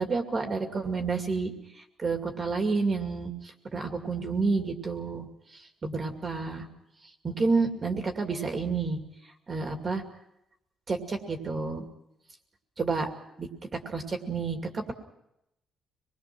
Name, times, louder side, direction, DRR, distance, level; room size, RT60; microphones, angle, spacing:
voice 1, 0.0-1.5 2.0-5.3 5.5-6.7 7.2-9.0 9.5-10.0 10.9-11.8 12.8-13.1 13.4-13.5 13.7-14.9, right 4 dB, 25° right, 4 dB, 2.4 m, -29 dB
25.0 x 21.0 x 6.1 m, 0.82 s
cardioid pair, 155°, 0 cm